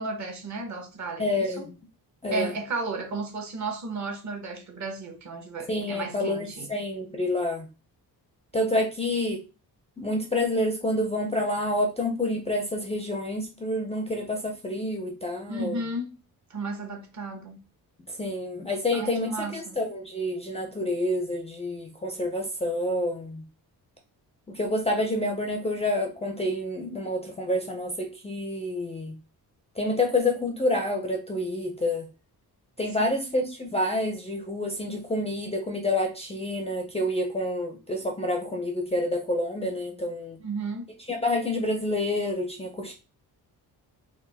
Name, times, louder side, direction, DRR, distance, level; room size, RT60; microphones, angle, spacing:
voice 1, 0.0-1.7 2.3-6.7 15.5-16.1 16.5-17.6 18.9-19.8 33.0-33.1 40.4-40.9, right 2 dB, 45° right, 0.9 m, -34 dB
voice 2, 1.2-1.7 2.2-2.5 5.7-7.7 8.5-9.4 10.0-15.8 18.1-23.4 24.5-29.2 29.8-32.1 32.8-40.4 41.1-42.9, left 1 dB, 15° left, 0.4 m, -28 dB
4.5 x 2.1 x 3.3 m
wide cardioid pair, 170°, 38 cm